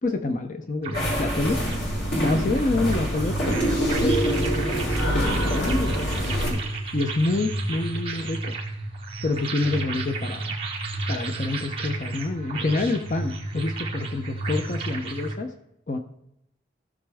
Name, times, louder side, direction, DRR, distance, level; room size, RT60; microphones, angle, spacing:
voice 1, 0.0-1.7 2.2-4.2 4.6-6.6 6.9-8.6 9.2-10.6 11.1-15.5 15.9-16.0, left 2 dB, 45° left, 6 dB, 0.7 m, -28 dB
sound 1, 0.8-15.3, right 2 dB, 30° right, 1.7 m, -32 dB
sound 2, 0.9-6.5, equal, 80° left, 3.5 m, -25 dB
16.0 x 6.4 x 3.5 m, 0.82 s
head